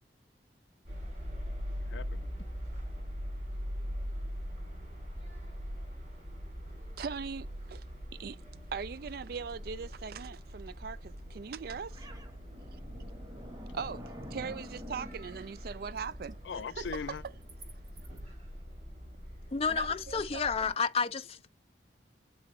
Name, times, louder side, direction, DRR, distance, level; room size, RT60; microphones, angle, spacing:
sound 1, 0.9-20.7, equal, 40° right, 2.9 m, -42 dB
voice 1, 1.8-2.3 12.8-13.8 16.4-17.2, left 6 dB, 90° left, 0.4 m, -42 dB
voice 2, 7.0-7.8 8.1-8.4 8.7-12.1 13.7-14.0 14.3-16.4 16.8-16.9 19.7-20.7, right 6 dB, 60° right, 0.4 m, -40 dB
sound 2, 11.1-18.2, equal, 20° right, 1.1 m, -50 dB
voice 3, 19.5-21.5, left 5 dB, 35° left, 0.5 m, -31 dB
7.7 x 3.9 x 3.1 m
head